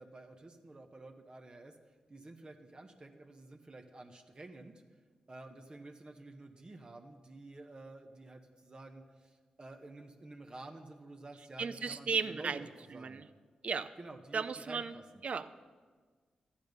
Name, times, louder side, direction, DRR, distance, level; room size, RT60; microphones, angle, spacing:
voice 1, 0.0-1.7 2.1-4.7 5.3-13.2 14.0-15.2, right 2 dB, 40° right, 4 dB, 1.0 m, -51 dB
voice 2, 11.6-12.6 12.9-13.3 13.6-13.9 14.3-14.9 15.2-15.6, right 5 dB, 60° right, 13 dB, 0.6 m, -35 dB
12.5 x 10.0 x 5.3 m, 1.5 s
cardioid pair, 55°, 2 cm